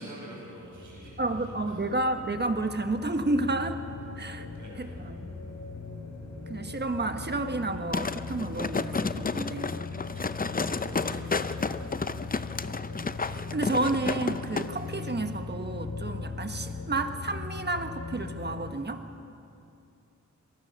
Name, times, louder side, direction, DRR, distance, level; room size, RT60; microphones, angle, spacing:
voice 1, 0.0-1.9 4.5-5.0 10.1-12.9, right 1 dB, 85° right, -3 dB, 6.7 m, -48 dB
sound 1, 0.6-18.7, left 4 dB, 70° left, 3.4 m, -39 dB
voice 2, 1.2-3.8 4.2-4.5 4.8-5.3 6.5-9.7 13.3-19.0, right 2 dB, 35° right, 7 dB, 1.3 m, -31 dB
sound 2, 7.9-14.7 15.0-15.1, left 4 dB, 30° left, 0.6 m, -31 dB
25.0 x 20.0 x 6.5 m, 2.6 s
wide cardioid pair, 100°, 30 cm